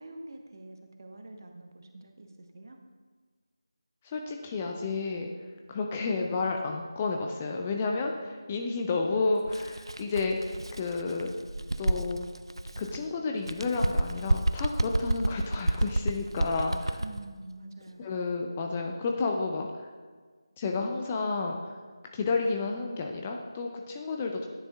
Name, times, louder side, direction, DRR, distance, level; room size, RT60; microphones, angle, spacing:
voice 1, 0.0-2.8 17.0-18.1, right 2 dB, 50° right, 4 dB, 0.8 m, -46 dB
voice 2, 4.0-5.3 5.7-11.3 11.8-12.3 12.8-17.0 18.0-19.7 20.6-21.8 22.1-24.5, left 3 dB, 15° left, 2 dB, 0.4 m, -31 dB
Bird, 9.4-13.0 13.4-17.2, right 1 dB, 85° right, 0.3 m, -30 dB
10.0 x 6.7 x 2.3 m, 1.5 s
figure-of-eight pair, 165°, 2 cm